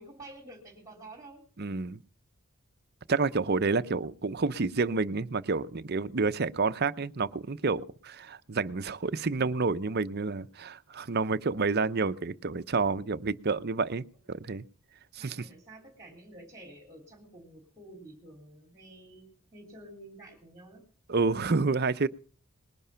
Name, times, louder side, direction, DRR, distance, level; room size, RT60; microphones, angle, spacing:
voice 1, 0.0-1.4 15.2-20.8, right 1 dB, 15° right, 3.8 m, -50 dB
voice 2, 1.6-2.0 3.1-14.6 15.2-15.4 21.1-22.1, right 4 dB, 45° right, 0.7 m, -29 dB
20.5 x 11.0 x 5.7 m
head